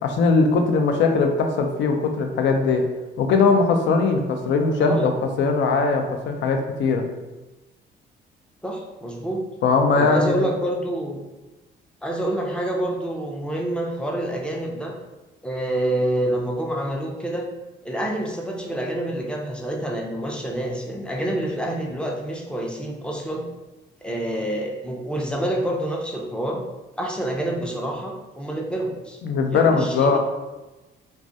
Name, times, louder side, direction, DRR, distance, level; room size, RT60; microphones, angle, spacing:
voice 1, 0.0-2.8 3.2-5.1 5.4-7.0 9.6-10.5 29.2-30.2, left 4 dB, 70° left, 4 dB, 0.4 m, -20 dB
voice 2, 8.6-9.4 9.9-11.2 12.0-14.9 15.4-17.5 17.8-23.5 24.0-26.6 27.0-29.2 29.5-30.2, right 1 dB, 5° left, 0 dB, 0.4 m, -27 dB
2.3 x 2.1 x 2.6 m, 1.1 s
cardioid pair, 90°, 20 cm